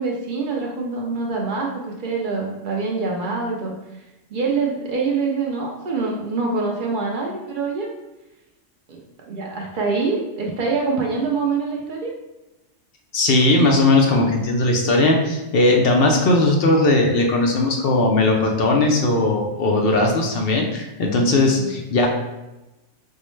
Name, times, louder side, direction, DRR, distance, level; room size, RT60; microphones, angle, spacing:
voice 1, 0.0-3.7 4.3-7.9 8.9-12.1 21.4-21.7, right 4 dB, 65° right, -2 dB, 0.5 m, -25 dB
voice 2, 13.1-22.1, left 2 dB, 65° left, 1 dB, 0.6 m, -18 dB
4.5 x 2.1 x 3.0 m, 1.0 s
omnidirectional pair, 1.4 m